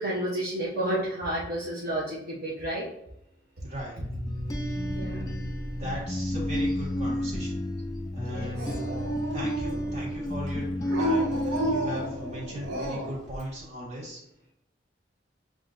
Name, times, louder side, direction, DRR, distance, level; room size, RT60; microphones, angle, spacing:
voice 1, 0.0-2.9 4.8-5.4 8.2-8.8, right 1 dB, 60° right, -6 dB, 0.9 m, -31 dB
voice 2, 3.6-4.0 5.8-7.6 8.1-9.0 9.3-10.7 11.0-14.2, equal, 40° right, -4 dB, 1.6 m, -37 dB
sound 1, 4.0-12.7, left 1 dB, 20° left, 0.4 m, -32 dB
Dog, 8.5-10.0 10.8-13.2, right 1 dB, 90° right, 0.8 m, -31 dB
7.1 x 2.4 x 2.6 m, 0.79 s
head